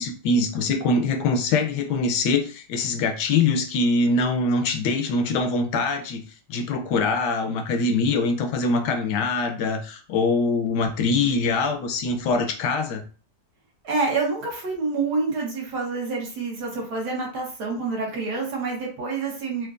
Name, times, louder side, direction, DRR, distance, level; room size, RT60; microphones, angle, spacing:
voice 1, 0.0-6.2 6.5-13.0, left 3 dB, 75° left, 6 dB, 1.2 m, -23 dB
voice 2, 13.8-19.7, right 4 dB, 70° right, -1 dB, 1.7 m, -27 dB
4.4 x 2.4 x 2.4 m, 0.37 s
omnidirectional pair, 1.9 m